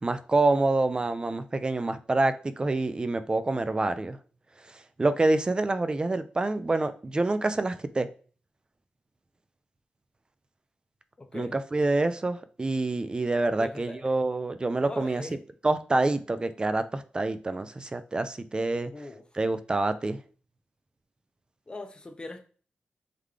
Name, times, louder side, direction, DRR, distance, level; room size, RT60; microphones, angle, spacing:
voice 1, 0.0-4.2 5.0-8.1 11.3-15.2 15.6-18.9 19.4-20.2, right 2 dB, 25° right, 11 dB, 0.4 m, -27 dB
voice 2, 11.2-11.6 13.6-14.1 14.8-15.4 18.9-19.3 21.7-22.4, left 2 dB, 25° left, 5 dB, 0.6 m, -40 dB
3.8 x 3.4 x 3.3 m, 0.40 s
wide cardioid pair, 95°, 3 cm